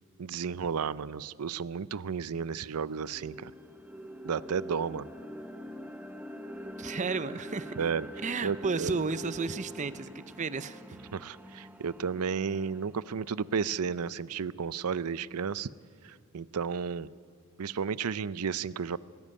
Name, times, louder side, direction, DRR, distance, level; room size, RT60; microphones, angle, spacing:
voice 1, 0.2-3.5 4.2-5.1 7.8-8.1 8.4-8.9 11.1-15.7 16.0-17.1 17.6-19.0, right 6 dB, 85° right, 19 dB, 0.5 m, -33 dB
sound 1, 2.6-14.4, equal, 5° right, 0.9 m, -45 dB
voice 2, 6.8-7.8 8.2-11.0, right 4 dB, 35° right, 15 dB, 0.6 m, -33 dB
18.5 x 16.5 x 9.6 m, 2.2 s
head